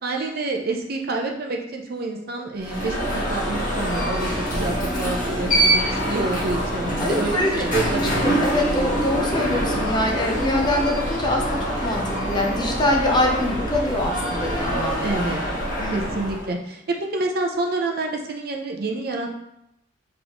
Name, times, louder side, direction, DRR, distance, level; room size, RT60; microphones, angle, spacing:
voice 1, 0.0-3.0 3.3-8.3 15.0-15.4 15.9-19.3, right 2 dB, 50° right, 2 dB, 0.6 m, -28 dB
Alarm, 2.6-16.5, right 1 dB, 45° left, 1.5 m, -25 dB
voice 2, 4.8-5.3 7.0-15.0 15.8-16.0, left 1 dB, 20° left, 0 dB, 0.6 m, -24 dB
sound 1, 7.5-13.2, equal, 85° right, 1.0 m, -40 dB
4.0 x 3.6 x 3.0 m, 0.79 s
head